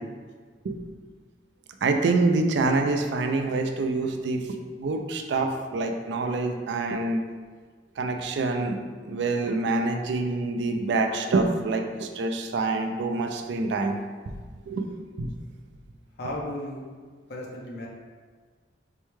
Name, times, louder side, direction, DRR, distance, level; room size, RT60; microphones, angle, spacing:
voice 1, 1.8-7.2 8.0-8.8 9.1-14.0 14.7-14.9 15.2-15.3, right 3 dB, 65° right, 5 dB, 0.4 m, -26 dB
voice 2, 16.2-16.8 17.3-17.9, left 1 dB, 60° left, -3 dB, 0.7 m, -34 dB
4.6 x 2.1 x 3.1 m, 1.5 s
head